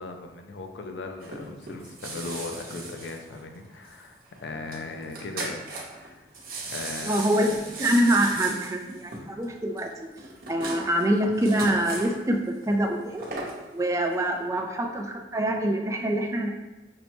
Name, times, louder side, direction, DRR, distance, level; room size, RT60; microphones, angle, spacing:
voice 1, 0.0-5.7 6.0-6.3 6.6-7.3, left 3 dB, 85° left, 5 dB, 0.5 m, -38 dB
sound 1, 1.2-4.0 4.3-4.4 4.7-4.8 5.0-6.1 6.3-12.2 12.9-13.6 14.1-14.2, right 3 dB, 55° right, 0.8 m, -37 dB
voice 2, 7.0-9.9 10.5-13.2 13.7-16.5, right 1 dB, 20° right, 2 dB, 0.3 m, -25 dB
5.3 x 2.1 x 2.9 m, 1.1 s
head